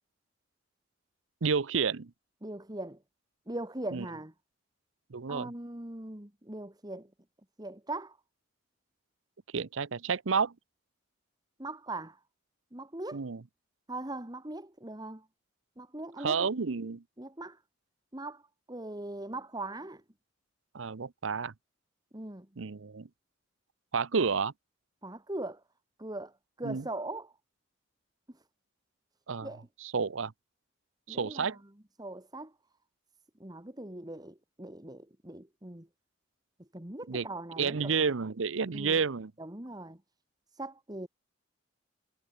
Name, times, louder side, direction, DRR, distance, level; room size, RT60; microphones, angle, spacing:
voice 1, 1.4-2.1 3.9-4.1 5.1-5.5 9.5-10.5 13.1-13.4 16.2-17.0 20.7-21.5 22.6-23.1 23.9-24.5 26.6-26.9 29.3-29.5 29.8-30.3 31.1-31.6 37.1-37.3 37.6-39.3, right 5 dB, 75° right, 0.7 m, -30 dB
voice 2, 2.4-3.0 3.5-4.3 5.3-7.1 7.6-8.2 11.6-12.2 12.7-13.2 13.9-15.3 15.8-16.5 17.2-17.6 18.1-18.4 18.7-20.0 22.1-22.5 25.0-25.6 26.0-27.3 29.4-29.7 31.1-31.6 32.0-32.5 33.4-35.9 36.7-37.9 38.7-39.0 39.4-40.0 40.5-41.1, right 2 dB, 20° right, 1.9 m, -40 dB
head